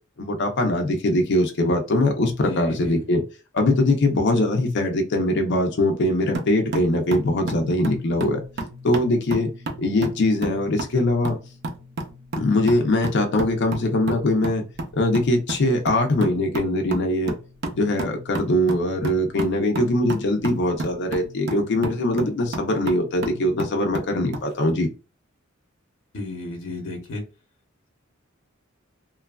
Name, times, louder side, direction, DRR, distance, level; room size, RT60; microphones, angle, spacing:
voice 1, 0.2-3.2 3.5-8.4 8.8-9.5 9.8-11.4 12.4-14.6 14.9-17.3 17.8-24.9, left 1 dB, 60° left, 4 dB, 0.5 m, -22 dB
voice 2, 2.4-3.0 26.1-27.2, left 2 dB, 85° left, 2 dB, 0.9 m, -33 dB
sound 1, 6.3-24.5, right 2 dB, 55° right, 0.6 m, -33 dB
3.1 x 2.3 x 2.2 m, 0.32 s
head